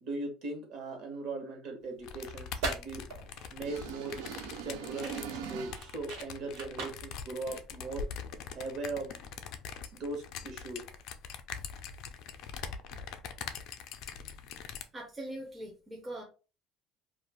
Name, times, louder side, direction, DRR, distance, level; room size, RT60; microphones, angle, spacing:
voice 1, 0.0-3.0 3.5-4.1 4.6-8.0 8.6-9.2 9.9-10.8, right 3 dB, 50° right, 2 dB, 1.0 m, -39 dB
sound 1, 2.0-14.8, left 7 dB, 55° left, 0.4 m, -43 dB
sound 2, 2.3-8.4, right 3 dB, 70° right, 1.1 m, -42 dB
sound 3, 3.6-6.1, right 8 dB, 90° right, 0.4 m, -42 dB
voice 2, 14.9-16.2, right 1 dB, 10° right, 0 dB, 0.5 m, -41 dB
2.4 x 2.3 x 3.3 m, 0.34 s
cardioid pair, 165°, 0 cm